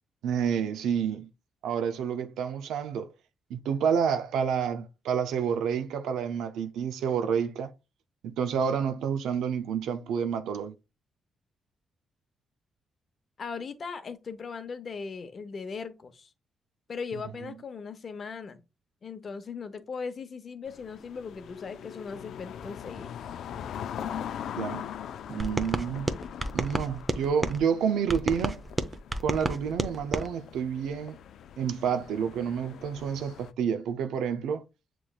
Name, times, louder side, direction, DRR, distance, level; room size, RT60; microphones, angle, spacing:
voice 1, 0.2-1.3 1.6-3.1 3.5-7.7 8.2-10.7 24.6-24.9 25.3-26.1 26.5-28.6 29.2-31.2 31.6-34.6, right 7 dB, 85° right, 0.5 m, -29 dB
voice 2, 13.4-16.3 16.9-18.6 19.0-23.1, left 5 dB, 55° left, 0.7 m, -38 dB
sound 1, 20.7-33.5, left 9 dB, 75° left, 0.3 m, -41 dB
sound 2, 25.4-27.6 28.1-30.3, right 2 dB, 25° right, 0.7 m, -31 dB
6.9 x 3.0 x 2.3 m
supercardioid pair, 60°, 0 cm